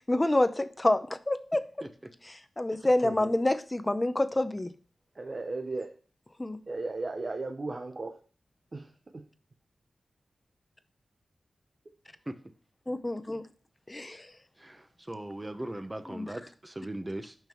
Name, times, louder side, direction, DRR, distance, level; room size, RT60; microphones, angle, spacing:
voice 1, 0.1-1.6 2.3-4.7 6.4-6.6 12.9-13.4 13.9-14.3 16.1-16.3, left 1 dB, 25° left, 0.7 m, -27 dB
voice 2, 5.2-5.9 6.7-8.2 8.7-9.3, right 3 dB, 45° right, 0.8 m, -36 dB
voice 3, 14.6-17.4, right 1 dB, 20° right, 0.9 m, -39 dB
6.0 x 5.5 x 4.4 m
cardioid pair, 55°, 0 cm